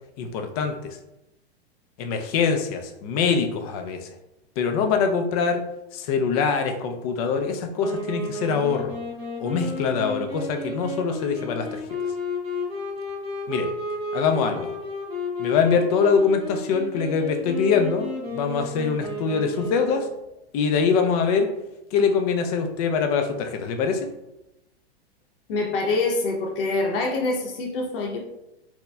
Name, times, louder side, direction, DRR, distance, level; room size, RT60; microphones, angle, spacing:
voice 1, 0.2-1.0 2.0-4.0 4.6-5.6 5.9-8.9 9.4-11.8 13.5-13.7 14.1-14.7 15.4-20.1 20.5-21.5 21.9-24.0, left 5 dB, 40° left, 5 dB, 0.4 m, -23 dB
Wind instrument woodwind instrument, 7.8-20.2, left 2 dB, 20° right, 0.6 m, -32 dB
voice 2, 25.5-28.2, left 3 dB, 60° left, 0 dB, 0.8 m, -25 dB
4.2 x 2.2 x 2.2 m, 0.90 s
hypercardioid pair, 140°, 31 cm